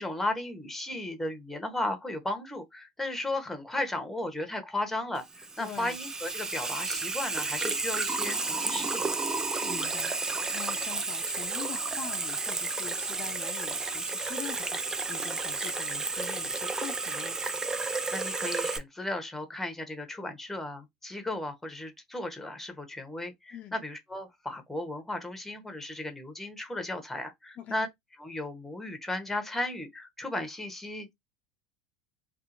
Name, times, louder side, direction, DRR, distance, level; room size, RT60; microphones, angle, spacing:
voice 1, 0.0-9.2 18.1-27.9 28.2-31.1, left 1 dB, 5° left, 0.9 m, -35 dB
Water tap faucet / Sink (filling or washing), 5.2-18.8, right 3 dB, 15° right, 0.4 m, -32 dB
voice 2, 5.6-6.0 9.6-17.4 23.5-23.8 27.6-27.8, left 8 dB, 40° left, 0.5 m, -44 dB
2.7 x 2.4 x 2.5 m
hypercardioid pair, 90°, 4 cm